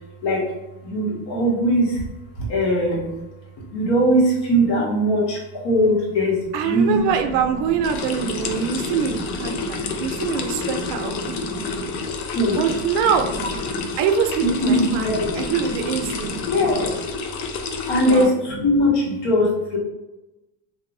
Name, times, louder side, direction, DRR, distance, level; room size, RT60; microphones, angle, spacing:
voice 1, 0.8-2.0 2.4-3.1 3.7-12.0 12.3-12.6 13.2-13.9 14.4-16.9 17.9-19.8, equal, 55° left, -3 dB, 1.1 m, -22 dB
voice 2, 6.5-11.4 12.6-13.3 14.0-16.3 18.1-18.3, right 7 dB, 80° right, 6 dB, 0.5 m, -24 dB
sound 1, 7.8-18.3, left 4 dB, 80° left, 0.6 m, -29 dB
2.6 x 2.1 x 2.6 m, 1.0 s
supercardioid pair, 90°, 47 cm